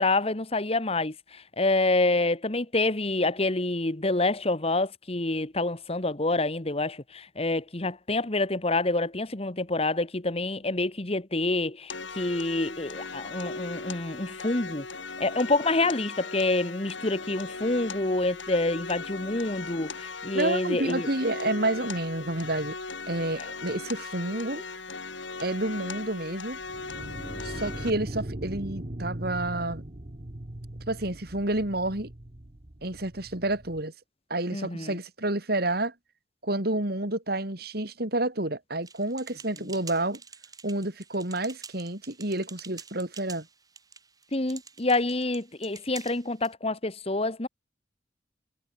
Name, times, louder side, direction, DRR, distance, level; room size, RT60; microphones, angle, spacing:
voice 1, 0.0-14.9 15.2-21.1 34.5-35.0 44.3-47.5, left 2 dB, 30° left, 1.5 m, -27 dB
sound 1, 11.9-27.9, left 4 dB, 90° left, 5.9 m, -38 dB
voice 2, 20.3-22.8 23.1-24.6 25.4-26.6 27.4-29.8 30.9-32.1 32.8-33.9 34.3-35.9 36.4-40.2 40.6-43.5, right 2 dB, 55° right, 3.5 m, -29 dB
sound 2, 26.5-33.8, right 1 dB, 40° right, 1.4 m, -39 dB
sound 3, 38.8-46.5, right 5 dB, 20° right, 5.6 m, -47 dB
head